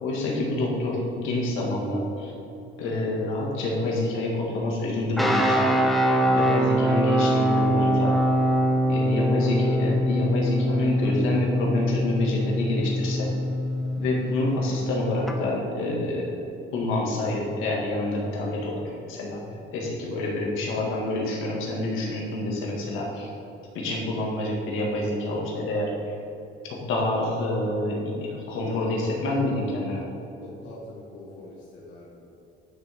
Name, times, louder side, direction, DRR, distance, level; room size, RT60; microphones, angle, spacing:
voice 1, 0.0-2.3 2.8-5.7 6.3-8.2 8.9-13.3 14.0-16.4 16.7-19.4 19.7-23.3 23.7-26.1 26.7-30.1, left 2 dB, 85° left, -2 dB, 1.9 m, -27 dB
sound 1, 5.2-15.3, equal, ahead, 0.5 m, -23 dB
voice 2, 30.4-32.3, left 1 dB, 70° left, -6 dB, 1.5 m, -44 dB
10.5 x 6.4 x 3.6 m, 2.9 s
cardioid pair, 170°, 20 cm